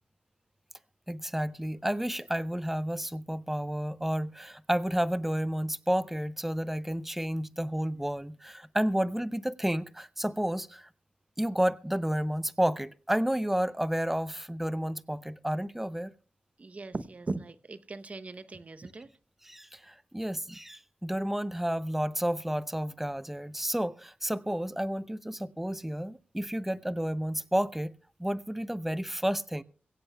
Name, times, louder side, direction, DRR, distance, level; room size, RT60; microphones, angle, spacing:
voice 1, 1.1-10.9 11.4-16.1 19.5-27.9 28.2-29.6, equal, 5° right, 0.6 m, -31 dB
voice 2, 16.6-19.1, right 3 dB, 40° right, 0.8 m, -39 dB
22.5 x 16.5 x 2.3 m
wide cardioid pair, 75°, 3 cm